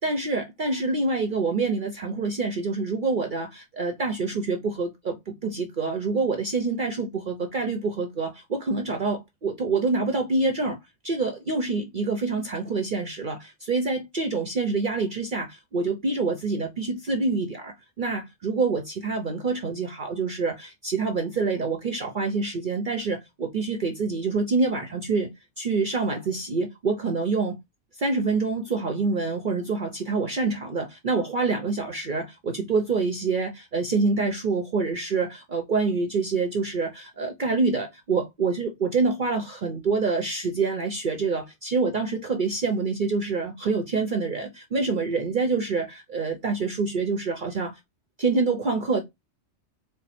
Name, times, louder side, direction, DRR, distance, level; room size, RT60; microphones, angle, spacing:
voice 1, 0.0-10.8 11.0-25.3 25.6-27.6 28.0-47.8 48.2-49.0, right 4 dB, 45° right, 0.7 m, -26 dB
4.5 x 2.1 x 4.1 m
omnidirectional pair, 1.4 m